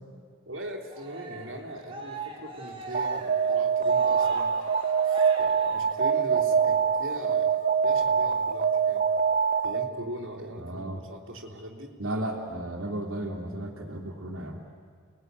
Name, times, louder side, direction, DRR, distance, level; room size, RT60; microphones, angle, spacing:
voice 1, 0.4-4.5 5.0-9.1 9.6-11.9, right 1 dB, 70° right, -1 dB, 3.3 m, -40 dB
Cheering, 0.9-6.4, right 3 dB, 25° right, 3.4 m, -42 dB
Alarm, 2.9-10.0, right 6 dB, 40° right, 0.7 m, -24 dB
voice 2, 10.6-11.0 12.0-14.6, right 1 dB, 90° right, -1 dB, 2.9 m, -34 dB
29.5 x 20.0 x 9.6 m, 2.1 s
head